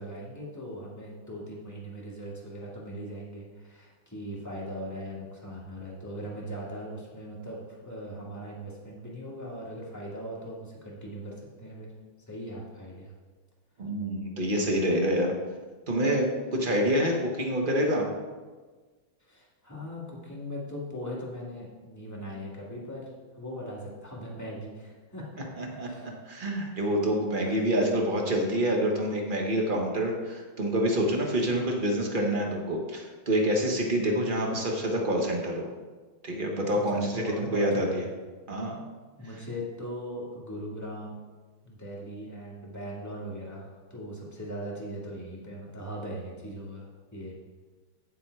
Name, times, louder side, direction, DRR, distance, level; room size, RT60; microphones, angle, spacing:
voice 1, 0.0-11.9 12.3-13.1 19.3-23.1 23.3-25.4 25.8-26.1 27.4-27.6 36.7-38.1 39.2-41.2 41.6-47.3, equal, 10° left, -5 dB, 1.9 m, -39 dB
voice 2, 13.8-15.3 15.9-18.0 25.6-35.7 36.2-37.2 37.5-38.0 38.5-38.8, equal, 30° right, 1 dB, 1.1 m, -27 dB
8.1 x 7.5 x 4.6 m, 1.3 s
omnidirectional pair, 2.3 m